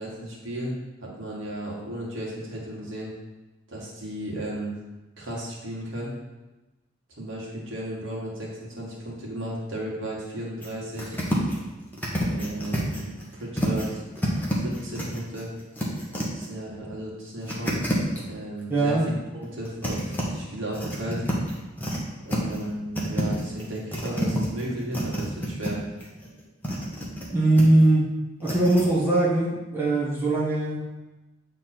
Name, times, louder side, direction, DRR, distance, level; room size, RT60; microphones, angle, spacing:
voice 1, 0.0-3.1 3.7-4.7 5.2-6.1 7.2-11.2 12.3-14.0 14.6-15.5 16.4-17.8 18.3-19.0 19.3-21.2 22.2-25.8, right 1 dB, 70° right, -4 dB, 1.9 m, -34 dB
sound 1, 10.6-10.7 11.0-11.6 11.9-13.9 14.2-16.5 17.4-18.2 19.4-20.2 20.7-22.0 22.3-22.7 23.0-25.7 26.0-27.3 27.6-27.8 28.4-28.8, equal, 10° left, 1.2 m, -29 dB
voice 2, 18.7-19.1 27.3-28.1 28.4-30.8, right 2 dB, 10° right, -6 dB, 1.5 m, -21 dB
8.4 x 3.7 x 4.4 m, 1.1 s
head